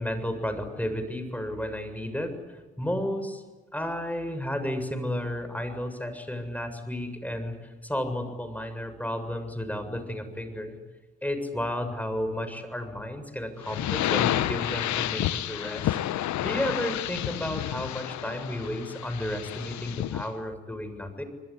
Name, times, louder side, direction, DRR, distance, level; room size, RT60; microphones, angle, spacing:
voice 1, 0.0-3.4 3.7-10.8 11.2-16.0 16.4-21.2, left 1 dB, 5° left, 8 dB, 7.1 m, -32 dB
sound 1, 13.6-20.3, left 13 dB, 70° left, 1.1 m, -30 dB
28.0 x 21.0 x 10.0 m, 1.3 s
hypercardioid pair, 45°, 30 cm